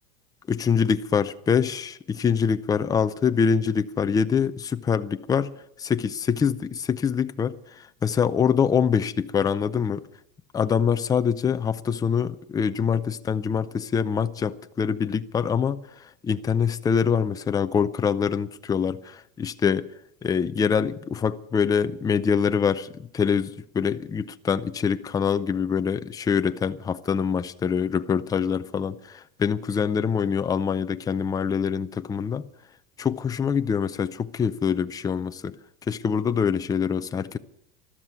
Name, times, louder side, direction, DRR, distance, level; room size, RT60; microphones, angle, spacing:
voice 1, 0.5-5.5 5.8-7.6 8.0-10.1 10.5-15.8 16.2-19.9 20.2-32.4 33.0-35.5 35.9-37.4, left 6 dB, 10° left, 0.5 m, -24 dB
13.5 x 12.5 x 8.3 m
supercardioid pair, 140°, 32 cm